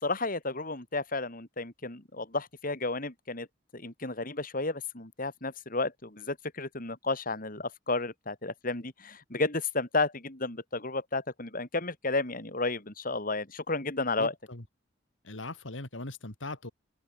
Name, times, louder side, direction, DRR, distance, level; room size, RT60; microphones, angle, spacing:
voice 1, 0.0-3.5 3.7-14.3, left 3 dB, 50° left, 4.0 m, -32 dB
voice 2, 14.2-14.6 15.2-16.7, left 2 dB, 85° left, 3.1 m, -40 dB
head